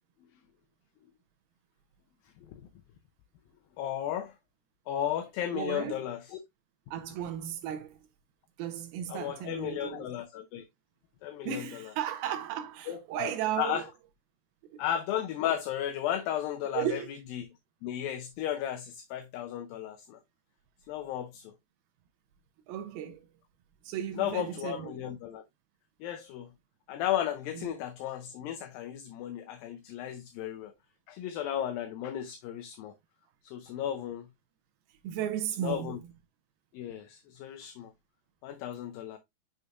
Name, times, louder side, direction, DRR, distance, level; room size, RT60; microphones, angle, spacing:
voice 1, 3.8-4.4 4.9-6.4 9.1-10.7 11.2-11.9 12.9-13.9 14.8-17.0 17.3-17.5 17.8-20.2 20.9-21.5 24.2-25.4 26.0-26.5 26.9-30.7 31.1-32.9 33.4-34.3 35.6-36.0 36.7-37.9 38.4-39.2, left 11 dB, 80° left, 2.3 m, -34 dB
voice 2, 5.5-6.0 6.9-8.0 8.6-10.1 11.4-13.8 14.7-14.8 16.7-17.1 22.7-23.3 23.8-25.0 27.6-27.7 35.0-36.0, right 10 dB, 80° right, 2.5 m, -35 dB
6.6 x 6.6 x 2.3 m
omnidirectional pair, 4.5 m